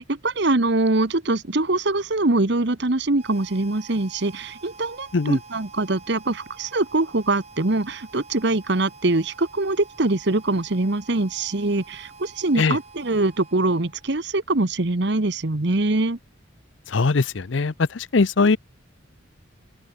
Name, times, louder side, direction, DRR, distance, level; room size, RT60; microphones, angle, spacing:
voice 1, 0.0-16.2, right 2 dB, 55° right, 1.2 m, -23 dB
Harmonica, 3.1-14.2, right 4 dB, 30° right, 5.0 m, -47 dB
voice 2, 16.9-18.6, left 4 dB, 65° left, 0.6 m, -21 dB
open air
head